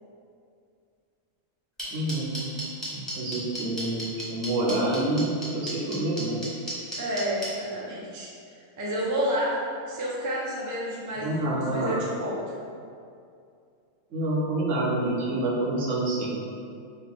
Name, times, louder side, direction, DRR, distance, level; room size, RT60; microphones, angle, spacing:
sound 1, 1.8-7.5, equal, ahead, 1.1 m, -34 dB
voice 1, 1.9-2.4 2.9-6.4 11.2-12.0 14.1-16.4, right 2 dB, 70° right, -4 dB, 1.1 m, -27 dB
voice 2, 7.0-9.6 9.8-12.5, equal, 25° right, -5 dB, 0.4 m, -30 dB
4.3 x 2.7 x 3.4 m, 2.4 s
omnidirectional pair, 1.3 m